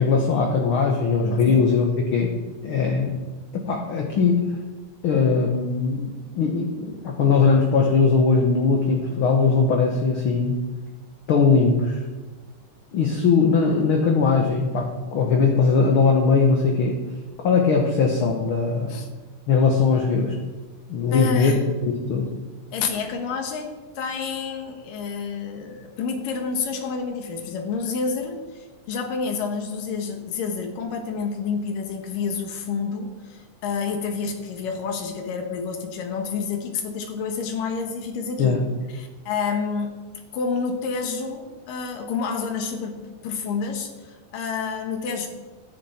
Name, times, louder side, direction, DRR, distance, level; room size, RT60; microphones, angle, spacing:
voice 1, 0.0-1.9 2.1-2.3 2.6-3.1 3.5-4.4 5.0-10.6 11.3-12.0 12.9-17.0 17.4-18.9 19.5-20.3 20.9-22.3 38.4-38.6, left 5 dB, 60° left, 2 dB, 1.5 m, -20 dB
voice 2, 21.1-21.6 22.7-38.6 38.9-40.0 40.3-45.3, left 5 dB, 85° left, 4 dB, 3.1 m, -29 dB
13.5 x 10.5 x 4.4 m, 1.3 s
omnidirectional pair, 3.8 m